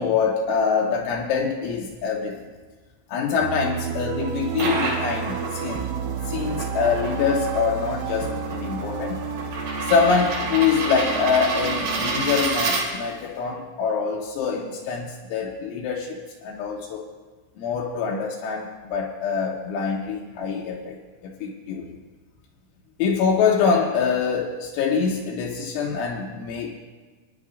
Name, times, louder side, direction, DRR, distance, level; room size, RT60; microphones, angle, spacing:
voice 1, 0.0-2.4 3.1-5.9 6.3-9.2 9.8-17.1 17.6-21.0 21.2-22.0 23.0-26.8, left 6 dB, 80° left, 0 dB, 3.0 m, -24 dB
sound 1, 3.4-12.5, right 6 dB, 80° right, 2.6 m, -31 dB
sound 2, 4.3-13.3, right 3 dB, 65° right, 4.1 m, -30 dB
23.0 x 10.0 x 2.4 m, 1.3 s
omnidirectional pair, 5.9 m